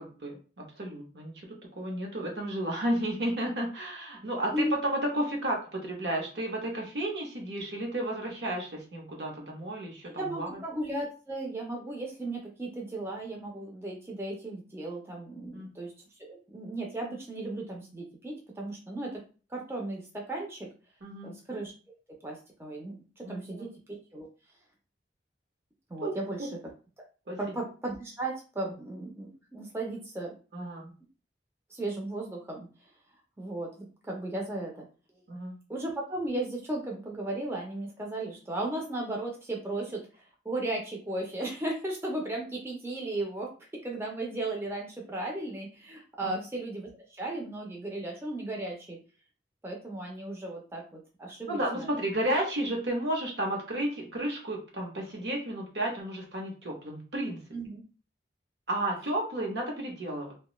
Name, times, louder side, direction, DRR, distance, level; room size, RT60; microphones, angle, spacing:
voice 1, 0.0-10.6 15.5-15.7 21.0-21.3 23.2-23.6 26.0-26.1 26.4-26.5 27.3-27.4 30.5-30.9 35.3-35.6 46.2-46.4 51.5-57.4 58.7-60.3, right 1 dB, 70° right, 0 dB, 0.8 m, -32 dB
voice 2, 10.1-15.9 16.2-19.2 19.5-20.7 21.2-21.7 22.2-24.3 25.9-26.6 27.4-30.3 31.7-32.7 33.4-34.9 35.1-35.2 35.7-43.5 43.8-49.0 49.6-52.0 57.5-57.8, right 2 dB, 15° right, -1 dB, 0.4 m, -36 dB
2.5 x 2.2 x 2.9 m, 0.36 s
head